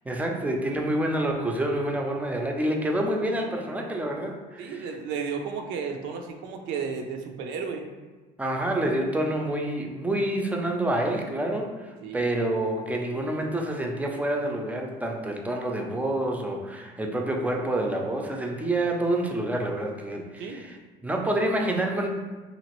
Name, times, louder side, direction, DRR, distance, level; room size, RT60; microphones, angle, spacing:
voice 1, 0.1-4.9 8.4-20.8 21.0-22.1, right 1 dB, 10° right, 1 dB, 0.4 m, -28 dB
voice 2, 4.6-7.9 12.0-12.3 20.4-20.6, right 6 dB, 80° right, 3 dB, 0.5 m, -33 dB
2.9 x 2.5 x 2.9 m, 1.3 s
cardioid pair, 95°, 19 cm